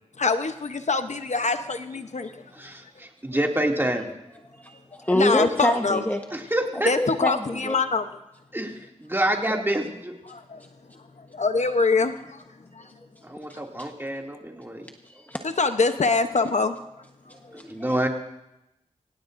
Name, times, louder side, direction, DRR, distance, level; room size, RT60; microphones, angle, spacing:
voice 1, 0.2-2.3 5.1-6.0 6.9-8.0 10.3-10.6 11.3-12.4 12.8-12.9 15.4-16.7, left 4 dB, 65° left, 8 dB, 0.9 m, -24 dB
voice 2, 2.5-4.1 6.3-6.9 8.5-8.7 9.0-10.1 13.2-14.9 17.7-18.1, right 1 dB, 15° right, 1 dB, 2.5 m, -27 dB
voice 3, 4.6-6.2 6.7-7.8 9.5-9.6 13.5-13.9 15.3-15.4 17.5-18.0, left 1 dB, 15° left, 3 dB, 1.2 m, -26 dB
25.5 x 17.0 x 2.6 m, 0.90 s
wide cardioid pair, 55°, 13 cm